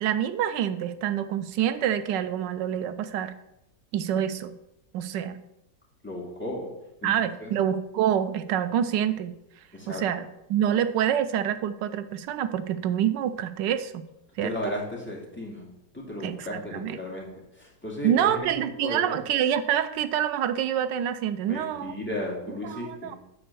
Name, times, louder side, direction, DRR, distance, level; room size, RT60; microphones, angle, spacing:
voice 1, 0.0-3.3 3.9-4.5 4.9-5.4 7.0-9.3 9.9-10.2 10.5-14.0 14.4-14.7 16.2-17.0 18.0-22.0 22.6-23.2, right 10 dB, 90° right, 11 dB, 1.3 m, -27 dB
voice 2, 6.0-6.7 7.0-7.1 7.4-7.5 9.7-10.0 14.4-15.7 15.9-17.3 17.6-18.5 18.8-19.1 21.5-23.2, left 1 dB, 5° left, -3 dB, 2.2 m, -34 dB
8.7 x 4.4 x 6.8 m, 0.87 s
omnidirectional pair, 1.9 m